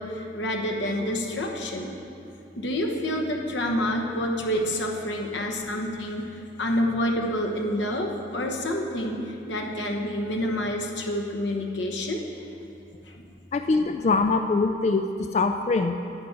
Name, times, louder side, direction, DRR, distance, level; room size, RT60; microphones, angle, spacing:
voice 1, 0.0-1.9 2.6-12.2 13.1-13.2, left 1 dB, 90° left, 2 dB, 1.1 m, -28 dB
voice 2, 13.5-15.1 15.3-16.0, left 3 dB, 40° left, 6 dB, 0.3 m, -23 dB
10.5 x 10.0 x 3.9 m, 2.7 s
head